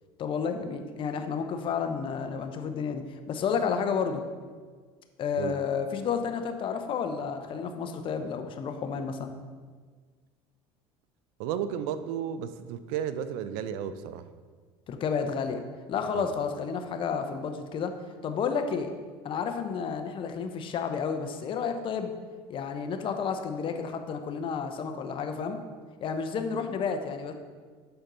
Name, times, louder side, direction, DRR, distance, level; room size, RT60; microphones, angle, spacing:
voice 1, 0.2-3.0 3.3-4.2 5.2-9.3 14.9-15.6 15.9-17.9 18.2-18.9 19.2-22.1 22.5-25.6 26.0-27.3, left 6 dB, 45° left, 7 dB, 0.7 m, -31 dB
voice 2, 11.4-14.2 16.1-16.3, right 9 dB, 75° right, 12 dB, 0.4 m, -33 dB
6.7 x 4.4 x 3.8 m, 1.5 s
supercardioid pair, 100°, 12 cm